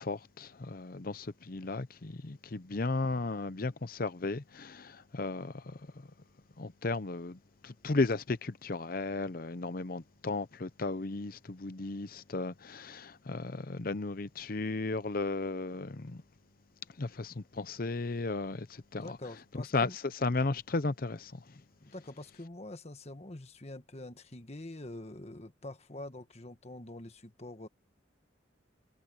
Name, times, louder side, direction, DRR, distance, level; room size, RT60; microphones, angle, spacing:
voice 1, 0.0-6.1 6.6-16.2 17.0-19.2 19.7-19.9 20.2-21.4, left 3 dB, 50° left, 0.7 m, -35 dB
voice 2, 19.0-19.9 21.8-27.7, left 1 dB, 35° left, 1.5 m, -45 dB
head